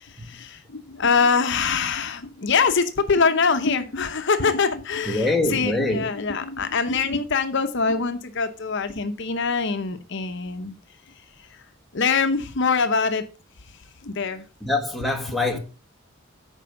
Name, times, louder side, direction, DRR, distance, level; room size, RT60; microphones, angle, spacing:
voice 1, 0.0-10.7 11.9-13.2 14.0-14.4, left 5 dB, 50° left, 0.8 m, -24 dB
voice 2, 5.1-6.1 14.6-15.6, left 2 dB, ahead, 1.4 m, -24 dB
9.0 x 5.1 x 5.7 m
head